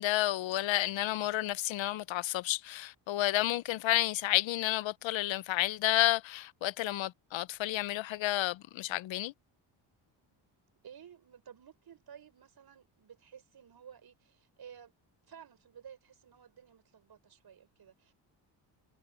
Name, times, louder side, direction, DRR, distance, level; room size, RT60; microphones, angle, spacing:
voice 1, 0.0-9.3, left 15 dB, 70° left, 0.8 m, -31 dB
voice 2, 10.8-14.9 15.3-18.1, right 8 dB, 50° right, 6.3 m, -54 dB
cardioid pair, 105°, 48 cm